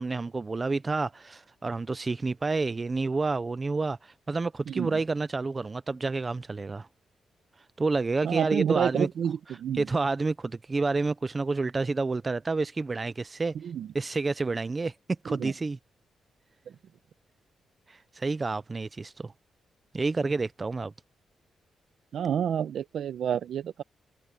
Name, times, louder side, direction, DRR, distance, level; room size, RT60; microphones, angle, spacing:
voice 1, 0.0-6.9 7.8-9.1 9.8-13.6 13.9-14.9 15.2-15.8 17.9-19.3 19.9-20.9, right 3 dB, 25° right, 0.4 m, -29 dB
voice 2, 4.7-5.0 8.2-9.9 13.6-13.9 15.3-15.5 22.1-23.8, right 8 dB, 65° right, 0.8 m, -29 dB
wide cardioid pair, 155°, 0 cm